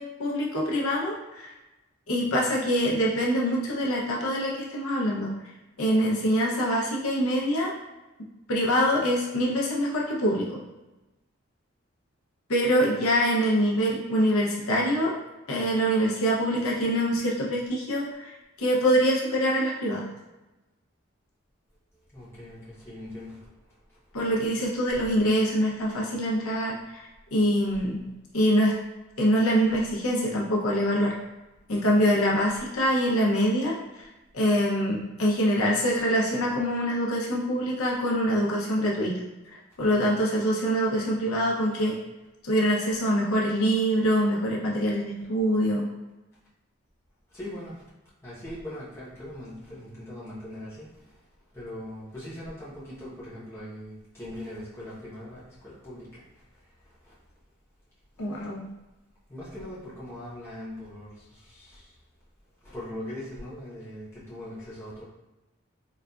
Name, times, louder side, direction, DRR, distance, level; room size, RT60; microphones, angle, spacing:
voice 1, 0.0-1.5 2.1-5.3 5.8-7.7 8.5-10.5 12.5-15.2 15.5-18.3 18.6-20.1 24.1-26.8 27.3-28.0 28.3-28.8 29.2-31.2 31.7-34.1 34.3-39.2 39.8-42.0 42.4-45.9 58.2-58.7, equal, 85° left, -3 dB, 0.7 m, -24 dB
voice 2, 22.1-23.4 24.4-24.5 47.3-47.7 48.2-50.9 51.5-56.1 59.3-61.1 62.7-65.0, left 1 dB, 10° left, -9 dB, 0.8 m, -40 dB
3.9 x 2.4 x 2.3 m, 1.1 s
head